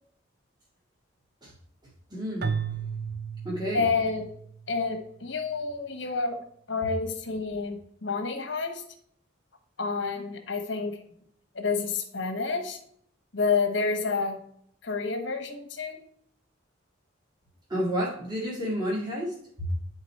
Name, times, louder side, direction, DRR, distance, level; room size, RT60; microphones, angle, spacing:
voice 1, 2.1-2.6 3.4-3.8 17.7-19.7, equal, 20° right, -6 dB, 1.9 m, -30 dB
Keyboard (musical), 2.4-4.7, right 6 dB, 55° right, 0.6 m, -34 dB
voice 2, 3.7-4.3 4.7-6.4 6.7-8.8 9.8-11.0 11.5-12.8 13.3-14.4 14.8-16.0, left 4 dB, 65° left, 6 dB, 1.3 m, -29 dB
10.5 x 4.0 x 4.2 m, 0.65 s
head